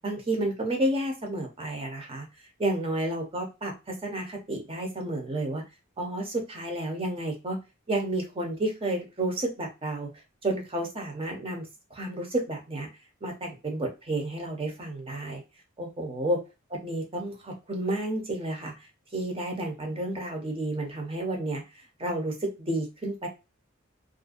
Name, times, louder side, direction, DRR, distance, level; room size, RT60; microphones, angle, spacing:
voice 1, 0.0-2.3 2.6-5.6 6.0-7.6 7.9-10.1 10.4-11.7 11.9-12.9 13.2-15.4 15.8-16.4 16.7-18.7 19.1-21.6 22.0-23.3, right 1 dB, 25° right, 2 dB, 0.7 m, -31 dB
2.5 x 2.2 x 2.4 m, 0.26 s
head